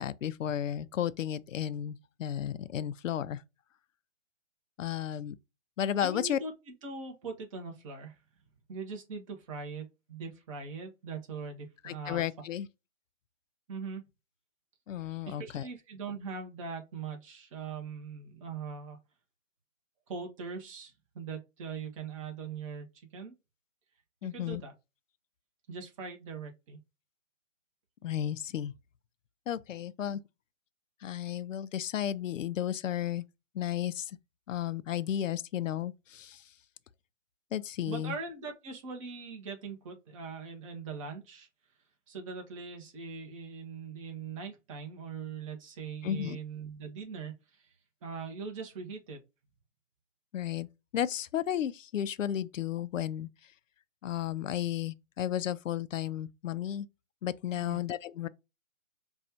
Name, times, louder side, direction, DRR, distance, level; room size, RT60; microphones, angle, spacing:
voice 1, 0.0-3.4 4.8-5.4 5.8-6.4 11.8-12.7 14.9-15.7 24.2-24.6 28.0-28.7 29.5-30.2 31.0-33.2 33.5-34.2 34.5-36.4 37.5-38.2 46.0-46.4 50.3-50.7 50.9-53.3 54.0-56.9 57.2-58.3, left 10 dB, 80° left, 0.5 m, -33 dB
voice 2, 6.0-6.5 6.8-8.2 8.7-12.2 13.7-14.0 15.3-19.0 20.1-22.9 23.1-23.3 24.3-24.7 25.7-26.8 37.9-41.5 42.1-47.7 48.0-49.2 57.6-57.8, right 5 dB, 25° right, 0.9 m, -41 dB
5.2 x 2.3 x 2.7 m
hypercardioid pair, 150°, 38 cm